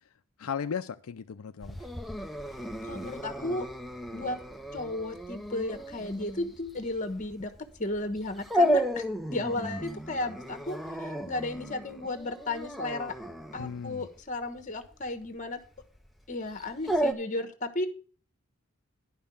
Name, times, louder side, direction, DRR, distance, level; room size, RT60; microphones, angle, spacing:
voice 1, 0.4-1.9 13.5-14.1, left 7 dB, 75° left, 0.4 m, -36 dB
Dog, 1.6-17.1, equal, ahead, 0.6 m, -33 dB
voice 2, 2.8-3.7 4.1-4.4 4.7-7.5 7.8-13.1 13.5-15.6 16.3-17.9, left 2 dB, 35° left, 1.2 m, -34 dB
11.0 x 5.5 x 7.0 m
head